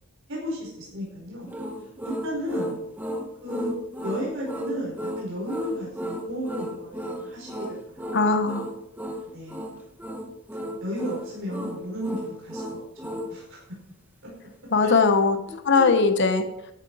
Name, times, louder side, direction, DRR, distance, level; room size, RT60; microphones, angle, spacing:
voice 1, 0.3-1.5 2.0-2.8 3.4-3.7 4.0-8.4 9.3-9.7 10.8-13.6 14.8-14.9 15.7-15.9, equal, 60° right, -4 dB, 5.0 m, -34 dB
sound 1, 1.5-13.3, equal, 10° right, 1.6 m, -34 dB
voice 2, 8.1-8.7 14.7-15.4 15.6-16.5, left 4 dB, 55° left, 8 dB, 1.0 m, -20 dB
13.0 x 9.6 x 4.8 m, 0.81 s
head